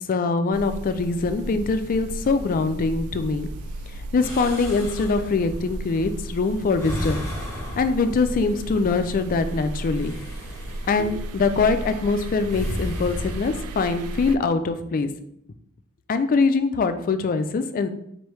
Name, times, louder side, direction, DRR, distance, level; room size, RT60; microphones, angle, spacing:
voice 1, 0.1-3.5 3.9-7.3 7.8-10.1 10.9-15.1 16.1-17.9, left 4 dB, 40° left, 9 dB, 0.3 m, -23 dB
sound 1, 0.5-14.4, right 2 dB, 70° right, 0.3 m, -35 dB
sound 2, 4.2-13.5, left 1 dB, 15° left, 1.0 m, -36 dB
4.4 x 3.2 x 3.1 m, 0.75 s
head